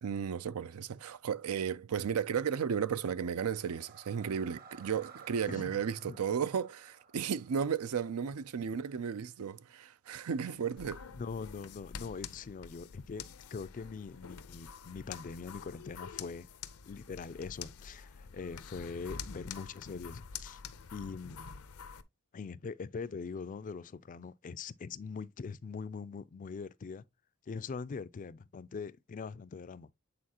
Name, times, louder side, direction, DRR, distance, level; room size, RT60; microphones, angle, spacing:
voice 1, 0.0-11.0, right 7 dB, 80° right, 0.4 m, -34 dB
sound 1, 2.9-9.0, right 6 dB, 45° right, 1.0 m, -57 dB
voice 2, 5.5-5.8 6.1-6.2 10.5-10.6 11.2-13.2 13.5-16.5 16.9-20.6 20.9-21.4 22.3-27.0 27.5-29.9, left 5 dB, 35° left, 0.4 m, -42 dB
sound 2, 10.8-22.0, left 6 dB, 80° left, 0.6 m, -47 dB
8.6 x 4.0 x 2.9 m
head